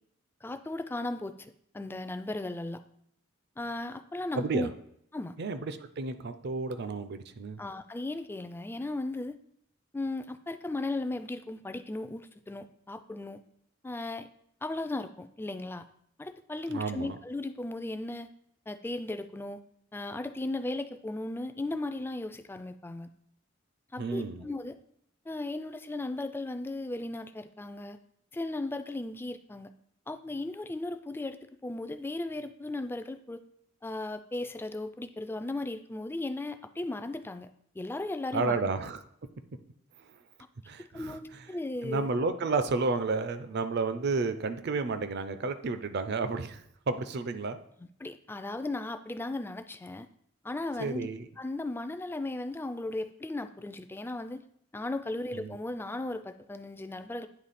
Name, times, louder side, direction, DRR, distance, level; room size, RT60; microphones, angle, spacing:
voice 1, 0.4-2.8 3.6-4.7 5.1-5.4 7.6-9.4 9.9-13.4 13.8-14.3 14.6-15.9 16.2-18.3 18.7-19.6 19.9-23.1 23.9-24.8 25.3-28.0 28.3-29.7 30.1-33.4 33.8-38.6 40.8-42.1 47.8-50.1 50.4-51.1 51.4-54.4 54.7-57.3, left 2 dB, 10° left, 10 dB, 0.3 m, -36 dB
voice 2, 4.3-4.7 5.4-7.6 16.7-17.2 24.0-24.4 38.3-39.0 40.7-41.2 41.8-47.6 50.8-51.3 55.3-55.6, right 3 dB, 55° right, 10 dB, 0.5 m, -31 dB
9.2 x 3.1 x 4.1 m, 0.72 s
head